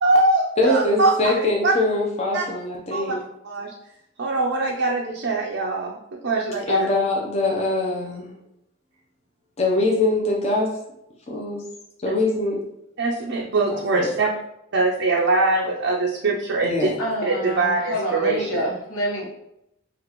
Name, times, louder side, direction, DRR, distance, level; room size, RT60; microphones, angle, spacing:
voice 1, 0.0-1.1 1.6-1.7 2.3-2.4 2.9-3.0 3.4-3.7 4.2-6.0 6.2-6.9 12.1-12.2 13.0-14.3 14.7-16.9 17.2-18.7, right 3 dB, 60° right, -2 dB, 0.5 m, -22 dB
voice 2, 0.6-3.2 6.7-8.3 9.6-10.7 11.3-11.6 12.0-12.6 13.7-14.1 16.6-17.0, left 2 dB, 30° left, -3 dB, 0.7 m, -23 dB
voice 3, 17.0-19.3, equal, 85° left, -2 dB, 1.1 m, -27 dB
5.1 x 2.4 x 3.0 m, 0.82 s
head